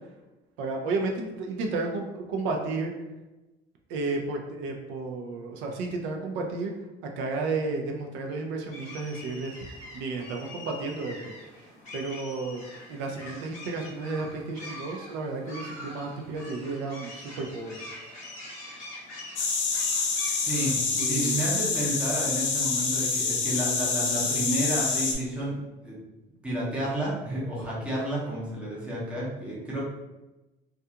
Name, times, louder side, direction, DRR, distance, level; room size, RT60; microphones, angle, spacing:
voice 1, 0.6-2.9 3.9-6.7 7.2-9.5 9.9-11.3 11.6-12.6 12.9-17.8 21.0-21.4, right 3 dB, 85° right, 2 dB, 0.5 m, -32 dB
sound 1, 8.7-21.0, left 1 dB, 40° left, 0.7 m, -44 dB
sound 2, 19.4-25.1, left 4 dB, 85° left, 0.6 m, -27 dB
voice 2, 20.3-20.7 21.0-25.5 25.8-26.0 26.4-29.8, right 1 dB, 5° right, -7 dB, 0.6 m, -31 dB
2.3 x 2.3 x 2.7 m, 1.1 s
cardioid pair, 180°, 19 cm